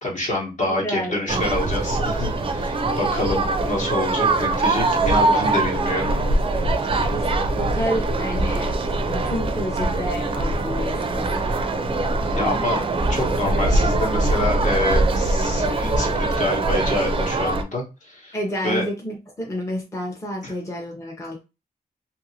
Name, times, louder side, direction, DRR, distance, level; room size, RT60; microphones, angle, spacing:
voice 1, 0.0-6.1 6.6-7.1 12.4-12.8 13.1-18.4 18.6-18.8 20.4-20.5, left 1 dB, 55° left, -2 dB, 1.2 m, -27 dB
voice 2, 0.7-1.4 7.1-11.3 18.3-21.4, equal, 20° left, -1 dB, 0.7 m, -30 dB
sound 1, 1.3-17.6, right 2 dB, 35° right, 0.4 m, -22 dB
2.8 x 2.7 x 2.7 m, 0.27 s
wide cardioid pair, 135°, 16 cm